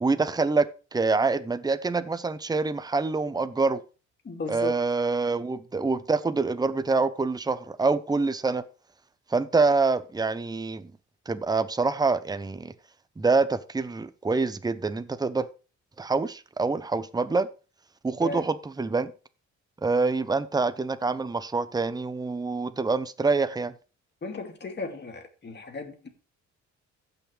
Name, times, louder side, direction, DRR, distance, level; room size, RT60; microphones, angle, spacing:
voice 1, 0.0-3.8 4.5-8.6 9.3-10.9 11.3-12.7 13.2-15.5 16.0-17.5 18.0-19.1 19.8-23.7, right 3 dB, 15° right, 0.7 m, -26 dB
voice 2, 4.2-4.7 18.2-18.4 24.2-26.1, left 3 dB, 35° left, 2.5 m, -35 dB
15.5 x 6.0 x 3.3 m
cardioid pair, 90°, 30 cm